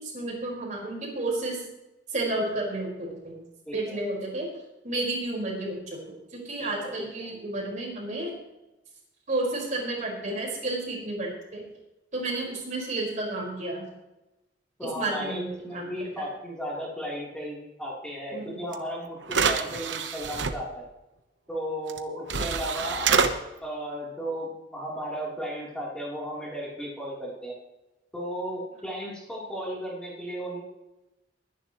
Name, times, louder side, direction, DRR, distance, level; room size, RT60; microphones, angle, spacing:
voice 1, 0.0-1.6 2.1-3.3 3.7-4.5 4.8-6.0 6.3-8.3 9.3-11.6 12.1-13.9 15.0-16.3 18.3-18.9, right 2 dB, 45° right, -3 dB, 5.0 m, -31 dB
voice 2, 3.7-4.0 6.6-7.3 14.8-20.9 21.5-23.2 23.6-27.5 28.1-30.7, equal, 5° left, -6 dB, 3.5 m, -35 dB
sound 1, 18.7-18.8 19.2-20.5 21.9-22.0 22.3-23.3, right 5 dB, 85° right, 1.1 m, -26 dB
21.5 x 10.5 x 3.1 m, 0.98 s
head